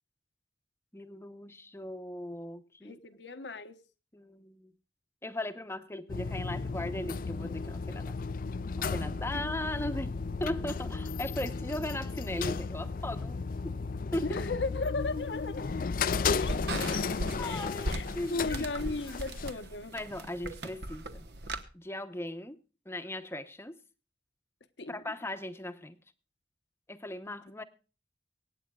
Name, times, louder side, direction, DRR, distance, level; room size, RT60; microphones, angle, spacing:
voice 1, 0.9-3.0 4.1-4.7 5.2-8.1 8.8-13.8 14.1-14.4 17.4-18.9 19.9-21.2 21.7-22.6 22.9-23.7 24.9-26.0 26.9-27.6, left 1 dB, 15° left, 0.9 m, -38 dB
voice 2, 2.8-3.8 9.3-9.4 14.2-15.7 16.4-16.6 17.4-18.0 18.3-19.9 24.8-25.1, left 3 dB, 80° left, 1.1 m, -36 dB
sound 1, 6.1-19.5, left 4 dB, 50° left, 0.4 m, -34 dB
sound 2, 15.0-21.6, right 1 dB, 65° right, 1.1 m, -39 dB
24.0 x 9.2 x 2.4 m
head